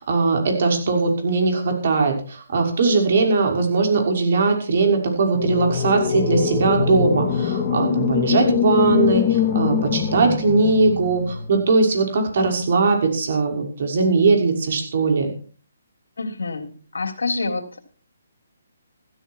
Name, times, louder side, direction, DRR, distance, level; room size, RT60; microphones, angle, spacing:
voice 1, 0.0-15.3, right 3 dB, 55° right, 3 dB, 6.1 m, -20 dB
sound 1, 5.3-11.5, left 8 dB, 30° left, 2.0 m, -23 dB
voice 2, 16.2-17.8, left 3 dB, 80° left, 6 dB, 3.3 m, -27 dB
15.5 x 14.0 x 4.7 m, 0.40 s
hypercardioid pair, 155°, 0 cm